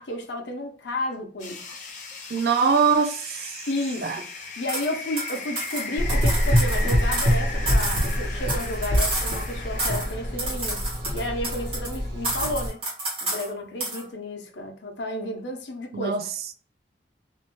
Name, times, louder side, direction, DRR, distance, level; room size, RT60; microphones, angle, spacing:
voice 1, 0.0-1.6 3.7-4.3 4.6-10.8 11.1-12.8 13.2-16.3, left 1 dB, 85° left, 0.7 m, -32 dB
sound 1, 1.4-10.4, left 4 dB, 45° left, 0.5 m, -37 dB
voice 2, 2.3-3.5 4.0-4.2 15.9-16.2, right 5 dB, 60° right, 0.3 m, -22 dB
sound 2, 4.7-4.9 5.2-7.4 7.7-9.5 9.8-10.1 10.4-12.0 12.2-13.5 13.8-14.0, right 2 dB, 35° right, 1.0 m, -30 dB
Gurgling / Engine, 6.0-12.7, equal, 85° right, 1.0 m, -25 dB
2.7 x 2.1 x 2.9 m
head